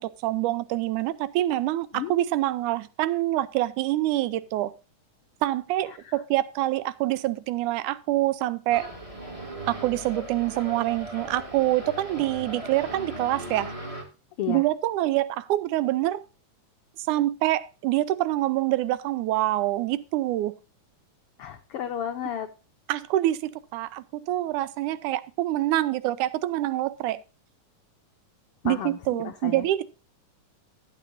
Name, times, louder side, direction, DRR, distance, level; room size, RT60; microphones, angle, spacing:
voice 1, 0.0-4.7 5.4-8.9 9.7-13.7 14.5-16.2 17.1-20.5 22.9-27.2 28.6-29.8, right 15 dB, 80° right, 2.1 m, -26 dB
voice 2, 5.9-6.2 14.4-14.6 21.4-22.5 28.6-29.7, left 10 dB, 80° left, 1.3 m, -33 dB
sound 1, 8.7-14.0, right 1 dB, 15° right, 1.7 m, -38 dB
15.0 x 8.5 x 2.6 m
omnidirectional pair, 3.6 m